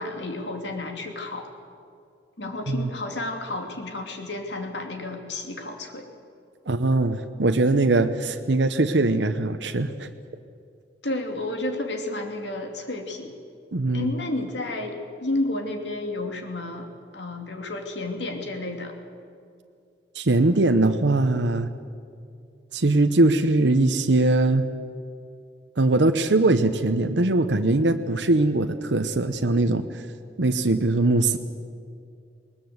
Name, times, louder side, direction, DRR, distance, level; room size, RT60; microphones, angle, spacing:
voice 1, 0.0-1.5 2.4-6.1 11.0-13.3 13.9-18.9, left 2 dB, 75° left, 4 dB, 2.7 m, -31 dB
voice 2, 6.7-10.1 13.7-14.1 20.1-21.7 22.7-24.6 25.8-30.0 30.4-31.4, right 2 dB, 75° right, 7 dB, 0.9 m, -21 dB
20.5 x 20.0 x 8.0 m, 2.4 s
head